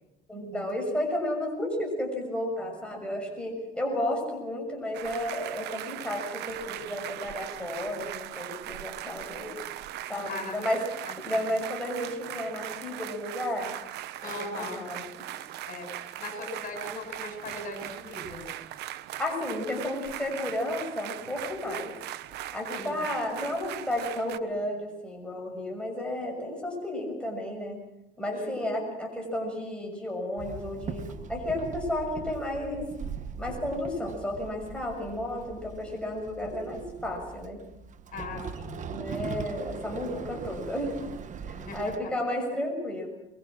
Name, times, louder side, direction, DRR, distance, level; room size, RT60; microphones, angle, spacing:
voice 1, 0.3-9.6 10.1-10.8 11.2-13.7 14.2-15.0 15.3-15.4 19.2-21.9 22.5-27.8 28.2-32.9 33.4-37.6 38.9-41.1 41.5-43.1, left 1 dB, 5° left, 0 dB, 6.7 m, -32 dB
sound 1, 4.9-24.4, right 13 dB, 80° right, 1.0 m, -39 dB
voice 2, 14.2-14.9 15.7-18.5 22.7-23.0 28.3-28.9 38.1-38.8 41.5-41.9, left 2 dB, 55° left, 3 dB, 7.2 m, -39 dB
Walk footsteps / Chatter / Hiss, 30.4-42.0, right 6 dB, 45° right, 1.3 m, -40 dB
23.5 x 23.0 x 6.2 m, 0.89 s
cardioid pair, 110°, 17 cm